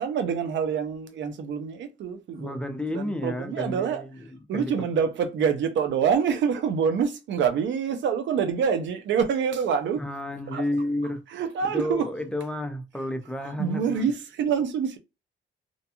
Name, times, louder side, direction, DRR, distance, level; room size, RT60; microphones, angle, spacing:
voice 1, 0.0-2.5 2.9-4.0 4.5-10.0 10.5-10.6 11.3-12.1 13.4-15.0, right 7 dB, 70° right, 0.5 m, -26 dB
voice 2, 2.4-4.1 4.5-4.7 10.0-11.2 11.7-14.1, left 1 dB, 5° left, 0.5 m, -31 dB
2.5 x 2.2 x 2.8 m
cardioid pair, 90°, 20 cm